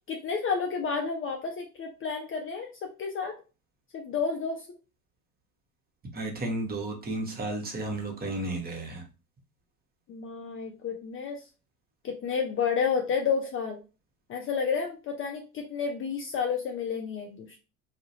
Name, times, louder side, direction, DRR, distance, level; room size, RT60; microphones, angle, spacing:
voice 1, 0.1-3.3 3.9-4.7 10.1-11.4 12.0-13.8 14.3-17.6, left 6 dB, 30° left, 3 dB, 0.4 m, -30 dB
voice 2, 6.1-9.0, right 2 dB, 20° right, 0 dB, 0.9 m, -33 dB
2.3 x 2.1 x 2.7 m, 0.32 s
hypercardioid pair, 75°, 41 cm